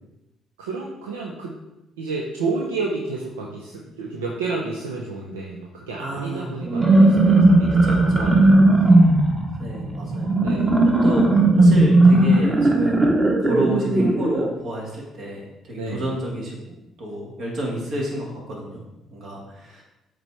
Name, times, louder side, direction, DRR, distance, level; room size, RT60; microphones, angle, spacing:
voice 1, 0.6-1.6 2.0-9.1 10.4-10.9 15.8-16.1, right 3 dB, 85° right, -1 dB, 0.6 m, -31 dB
voice 2, 6.0-6.6 7.7-8.4 9.6-10.4 10.8-11.2 11.5-13.1 13.4-16.6 17.0-18.8 19.1-19.8, right 1 dB, 60° right, -2 dB, 2.1 m, -31 dB
sound 1, 6.6-14.5, right 2 dB, 25° right, 1.5 m, -16 dB
7.7 x 3.3 x 4.4 m, 0.95 s
hypercardioid pair, 50°, 0 cm